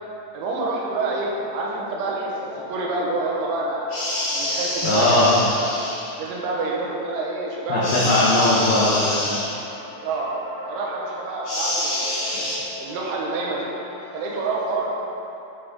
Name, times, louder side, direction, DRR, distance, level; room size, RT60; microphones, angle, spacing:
voice 1, 0.3-3.9 4.3-5.2 5.6-5.7 6.2-7.9 10.0-10.3 10.7-12.5 12.8-13.7 14.1-14.9, right 3 dB, 75° right, -3 dB, 3.3 m, -27 dB
sound 1, 1.2-14.8, left 2 dB, 70° left, 3.5 m, -40 dB
sound 2, 3.9-6.1 7.8-9.4 11.4-12.6, left 1 dB, 55° left, 1.5 m, -27 dB
voice 2, 4.8-5.3 7.7-9.3, left 2 dB, 85° left, -7 dB, 2.0 m, -19 dB
9.3 x 6.7 x 3.8 m, 2.7 s
omnidirectional pair, 5.8 m